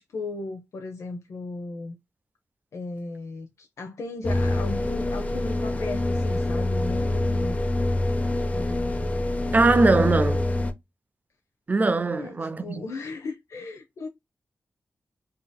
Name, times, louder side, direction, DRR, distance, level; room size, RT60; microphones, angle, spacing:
voice 1, 0.0-2.0 2.7-7.6 8.5-9.1 12.2-14.1, left 3 dB, 80° left, 0.6 m, -36 dB
sound 1, 4.2-10.7, left 1 dB, 25° left, 0.6 m, -25 dB
voice 2, 9.5-10.5 11.7-12.8, right 3 dB, 35° right, 0.4 m, -21 dB
3.6 x 2.7 x 2.2 m
wide cardioid pair, 80°, 5 cm